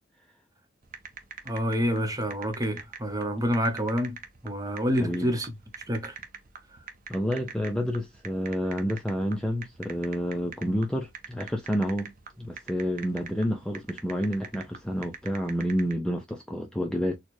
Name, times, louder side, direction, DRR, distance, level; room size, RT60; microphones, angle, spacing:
sound 1, 0.8-15.9, right 6 dB, 45° right, 0.8 m, -44 dB
voice 1, 1.4-4.2 4.4-5.5 5.9-6.2, equal, 20° right, 0.9 m, -27 dB
voice 2, 5.0-5.4 7.1-17.2, equal, 5° left, 0.4 m, -29 dB
4.4 x 2.3 x 3.1 m
head